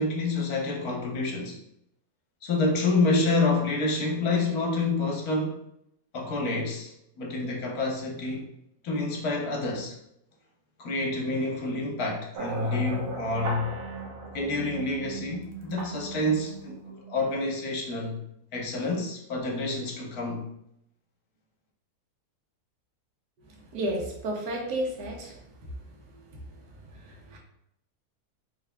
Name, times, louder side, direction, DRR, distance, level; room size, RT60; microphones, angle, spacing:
voice 1, 0.0-1.6 2.4-5.6 6.1-8.5 8.8-9.9 10.8-13.7 14.3-18.2 18.5-20.5, left 2 dB, 70° left, -1 dB, 1.3 m, -28 dB
sound 1, 12.3-17.7, right 3 dB, 50° right, 0.8 m, -37 dB
voice 2, 23.7-25.4 26.9-27.4, right 1 dB, 85° right, 0 dB, 1.4 m, -32 dB
4.8 x 3.3 x 2.2 m, 0.77 s
omnidirectional pair, 1.7 m